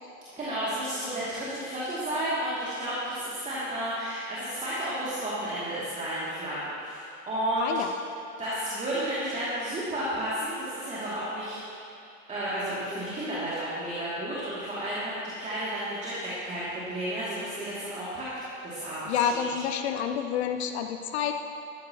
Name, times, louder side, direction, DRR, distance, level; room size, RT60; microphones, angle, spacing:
voice 1, 0.4-7.7 8.4-11.6 12.3-18.3 18.6-19.5, right 1 dB, 15° right, -9 dB, 2.4 m, -32 dB
voice 2, 7.6-7.9 19.1-21.3, left 8 dB, 55° left, 7 dB, 0.7 m, -28 dB
13.5 x 13.0 x 2.9 m, 2.6 s
figure-of-eight pair, 85°, 40 cm